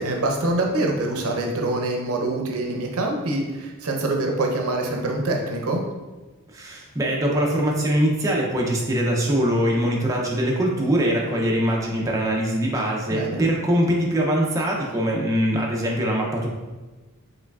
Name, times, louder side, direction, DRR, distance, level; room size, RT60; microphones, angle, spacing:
voice 1, 0.0-5.8 13.1-13.4, right 2 dB, 65° right, 1 dB, 0.6 m, -25 dB
voice 2, 6.5-16.5, equal, 15° right, -2 dB, 0.4 m, -22 dB
4.6 x 3.1 x 2.3 m, 1.2 s
head